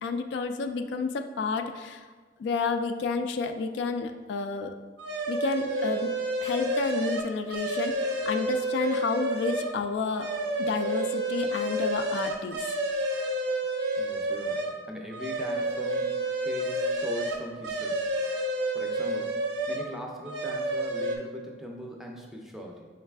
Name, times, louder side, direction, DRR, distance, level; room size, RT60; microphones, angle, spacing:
voice 1, 0.0-2.1 2.4-4.7 5.3-6.1 6.4-10.3 10.6-12.7, left 4 dB, 70° left, 8 dB, 0.3 m, -30 dB
sound 1, 5.0-9.8 10.1-14.8 15.1-19.9 20.2-21.2, right 1 dB, 75° right, 0.5 m, -30 dB
voice 2, 14.0-18.1 18.7-19.4 19.7-22.9, equal, ahead, 0 dB, 0.4 m, -40 dB
4.7 x 3.2 x 3.4 m, 1.4 s
head